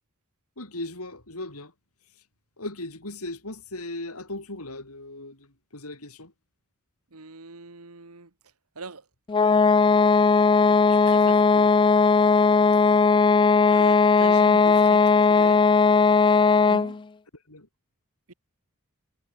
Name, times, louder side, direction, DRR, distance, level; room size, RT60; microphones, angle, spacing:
voice 1, 0.6-1.7 2.6-6.3 17.5-17.7, left 2 dB, 80° left, 6.8 m, -37 dB
voice 2, 7.1-8.3 8.8-9.1 10.9-11.8 13.7-15.7 16.7-17.0 18.3-18.4, right 3 dB, 80° right, 2.0 m, -40 dB
sound 1, 9.3-17.0, left 4 dB, 20° left, 0.3 m, -18 dB
head